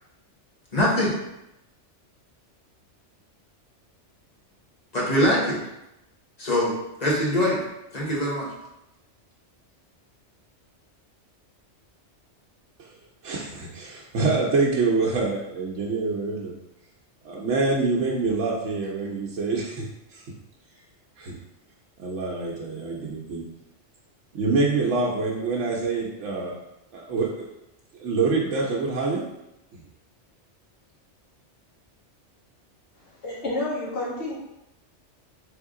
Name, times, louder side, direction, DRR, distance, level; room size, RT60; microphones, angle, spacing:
voice 1, 0.7-1.2 4.9-5.6 6.4-7.6 7.9-8.5, equal, 35° left, -5 dB, 1.2 m, -23 dB
voice 2, 13.2-16.5 17.2-19.9 20.1-20.2 21.2-21.4 22.0-23.4 24.3-26.6 26.9-27.3 27.9-29.2 29.7-29.8, right 3 dB, 80° right, -4 dB, 1.0 m, -26 dB
voice 3, 32.9-34.3, left 2 dB, 65° left, -7 dB, 1.8 m, -30 dB
3.7 x 3.5 x 3.6 m, 0.89 s
omnidirectional pair, 1.2 m